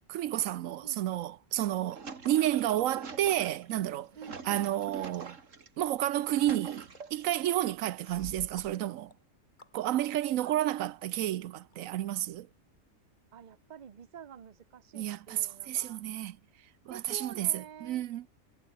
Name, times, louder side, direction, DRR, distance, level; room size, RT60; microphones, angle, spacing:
voice 1, 0.1-4.1 4.4-5.4 5.8-9.1 9.7-12.5 14.9-16.4 16.9-18.3, right 13 dB, 90° right, 1.0 m, -31 dB
voice 2, 0.6-1.0 4.1-4.5 10.4-10.6 13.3-16.1 16.9-18.0, right 8 dB, 40° right, 0.9 m, -48 dB
sound 1, 1.6-5.7 6.1-7.4 8.0-8.7, right 5 dB, 70° right, 2.5 m, -45 dB
sound 2, 6.4-11.2 11.7-11.8, left 3 dB, 35° left, 2.5 m, -62 dB
omnidirectional pair, 1.4 m